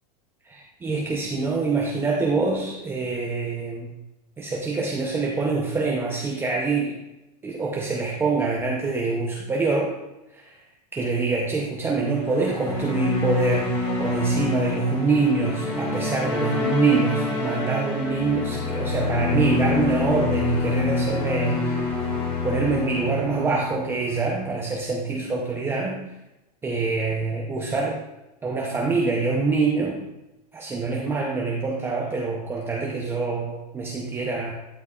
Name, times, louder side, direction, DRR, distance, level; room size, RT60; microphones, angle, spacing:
voice 1, 0.5-3.9 4.4-7.0 7.4-9.9 10.3-10.6 10.9-13.7 14.0-21.9 22.4-26.0 26.6-28.0 28.4-30.0 30.5-34.5, right 4 dB, 10° right, -2 dB, 0.6 m, -25 dB
sound 1, 12.0-24.5, left 2 dB, 25° left, 1.8 m, -26 dB
12.0 x 5.2 x 2.4 m, 0.96 s
supercardioid pair, 150°, 20 cm